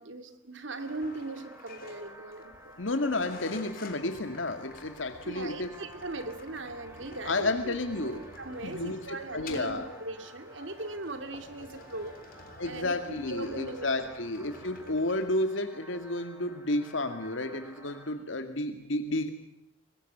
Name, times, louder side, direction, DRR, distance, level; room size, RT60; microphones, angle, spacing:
voice 1, 0.0-2.8 5.2-12.2 12.6-14.1, right 2 dB, 75° right, 9 dB, 2.6 m, -39 dB
sound 1, 0.7-18.1, right 1 dB, 15° right, 4.3 m, -52 dB
sound 2, 0.8-15.3, left 3 dB, 50° left, 3.6 m, -50 dB
voice 2, 2.8-5.8 7.2-8.2 8.6-9.9 12.6-19.3, left 2 dB, 80° left, 7 dB, 2.1 m, -31 dB
24.5 x 21.0 x 7.9 m, 0.81 s
head